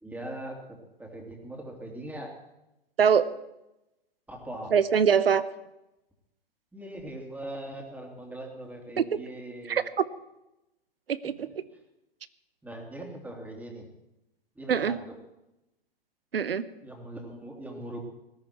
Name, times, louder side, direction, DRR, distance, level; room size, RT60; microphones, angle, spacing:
voice 1, 0.0-2.3 4.3-4.7 6.7-9.8 12.6-13.9 14.5-15.2 16.8-18.0, right 1 dB, 5° right, 1 dB, 3.0 m, -40 dB
voice 2, 4.7-5.4 9.0-9.1 9.7-10.0 11.1-11.5 14.7-15.0 16.3-16.6, right 7 dB, 75° right, 16 dB, 1.0 m, -23 dB
19.5 x 13.5 x 4.5 m, 0.92 s
figure-of-eight pair, 110°, 29 cm